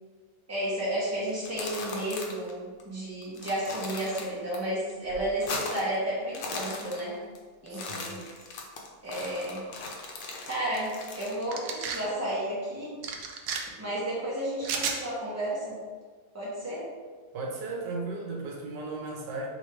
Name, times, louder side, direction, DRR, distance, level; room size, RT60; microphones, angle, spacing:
voice 1, 0.5-7.2 7.6-8.2 9.0-9.6 10.4-13.0 13.8-15.8 16.3-16.8, right 1 dB, 10° right, -8 dB, 1.2 m, -32 dB
sound 1, 1.3-2.5 2.8-2.9 3.2-4.6 4.9-6.0 6.2-7.4 7.7-11.4, left 3 dB, 90° left, 1.4 m, -38 dB
voice 2, 7.7-8.2 17.3-19.5, right 3 dB, 90° right, -1 dB, 1.4 m, -36 dB
sound 2, 11.5-12.0 13.0-13.6 14.6-15.0, right 6 dB, 70° right, 0.9 m, -32 dB
3.6 x 3.1 x 4.6 m, 1.5 s
omnidirectional pair, 1.8 m